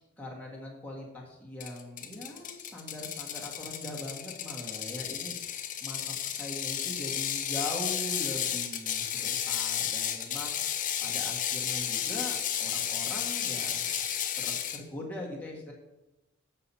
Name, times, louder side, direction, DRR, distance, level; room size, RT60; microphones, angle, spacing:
voice 1, 0.2-5.4 5.8-6.0 6.4-14.0 14.4-15.7, left 1 dB, 5° left, -3 dB, 1.7 m, -41 dB
Ratchet pawl, 1.6-14.8, left 9 dB, 35° left, 0.6 m, -33 dB
8.1 x 5.8 x 5.5 m, 0.98 s
head